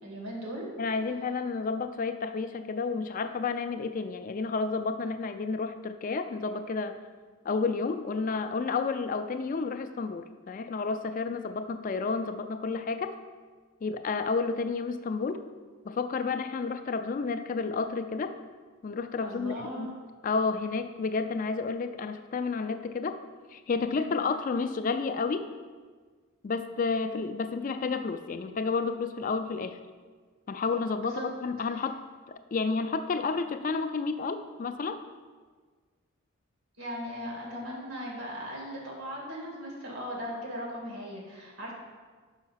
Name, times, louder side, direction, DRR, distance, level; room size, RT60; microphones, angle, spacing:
voice 1, 0.0-0.7 19.2-19.9 23.9-24.2 31.0-31.3 31.7-31.8 36.8-41.7, equal, 85° right, -2 dB, 2.1 m, -38 dB
voice 2, 0.8-7.0 7.5-13.2 13.8-15.4 15.9-18.3 18.8-19.9 20.2-23.2 23.5-25.5 26.4-29.8 30.5-32.0 32.5-35.0, left 4 dB, 40° left, 8 dB, 0.3 m, -31 dB
5.6 x 5.3 x 5.7 m, 1.5 s
head